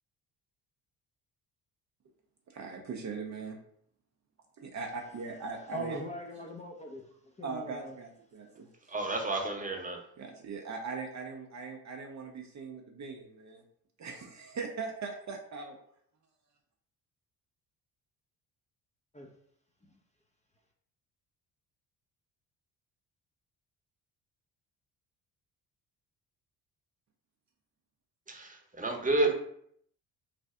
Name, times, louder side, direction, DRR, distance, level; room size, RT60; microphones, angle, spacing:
voice 1, 2.5-3.6 4.6-6.0 7.4-8.7 10.2-13.6 14.0-15.8, right 4 dB, 40° right, 2 dB, 0.6 m, -40 dB
voice 2, 5.7-7.0 7.4-7.9 19.1-19.3 19.9-20.0, equal, 15° left, 0 dB, 0.6 m, -40 dB
voice 3, 8.9-10.0 28.3-29.3, right 2 dB, 20° right, 1 dB, 0.9 m, -30 dB
3.3 x 2.5 x 3.6 m, 0.67 s
hypercardioid pair, 55°, 44 cm